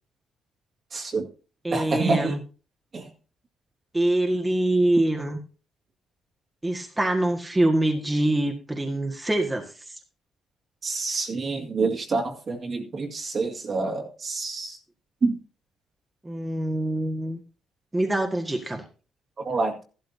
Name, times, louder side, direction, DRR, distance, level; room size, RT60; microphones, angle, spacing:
voice 1, 0.9-1.3 1.7-2.3 2.9-3.1 10.8-14.8 15.2-15.3 19.4-19.8, right 3 dB, 45° right, 1 dB, 2.1 m, -27 dB
voice 2, 1.6-2.4 3.9-5.4 6.6-9.7 16.2-17.4 17.9-18.8, right 1 dB, 10° right, 2 dB, 1.7 m, -24 dB
14.0 x 12.0 x 2.8 m, 0.36 s
cardioid pair, 90°, 0 cm